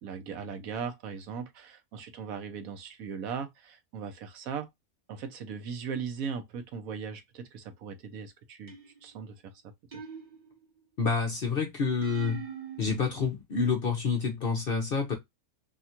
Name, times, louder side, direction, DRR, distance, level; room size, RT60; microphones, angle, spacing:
voice 1, 0.0-4.7 5.1-9.7, right 6 dB, 70° right, 1.1 m, -38 dB
sound 1, 8.7-9.2 9.9-10.8 12.0-12.8, right 4 dB, 35° right, 0.9 m, -41 dB
voice 2, 11.0-12.4 12.8-15.1, left 5 dB, 55° left, 0.7 m, -28 dB
3.5 x 2.3 x 2.7 m
omnidirectional pair, 1.6 m